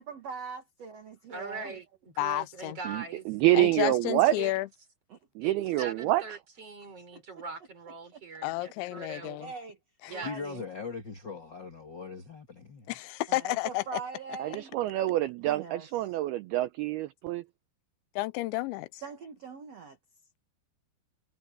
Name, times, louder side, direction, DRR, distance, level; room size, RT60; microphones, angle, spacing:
voice 1, 0.0-1.8 5.1-5.2 7.1-7.2 8.1-8.2 9.4-9.8 10.1-10.6 13.3-14.7 15.4-16.2 19.0-20.0, right 5 dB, 60° right, 1.7 m, -42 dB
voice 2, 1.3-3.3 4.4-4.5 5.4-9.4 10.1-10.3, right 4 dB, 35° right, 5.7 m, -41 dB
voice 3, 2.2-2.8 3.5-4.7 8.4-9.5 10.0-10.2 12.9-14.0 18.2-19.0, left 18 dB, 85° left, 3.0 m, -31 dB
voice 4, 2.9-4.3 5.4-6.2 14.4-17.4, right 16 dB, 80° right, 2.3 m, -27 dB
voice 5, 10.2-13.0, left 5 dB, 60° left, 1.1 m, -40 dB
omnidirectional pair, 5.2 m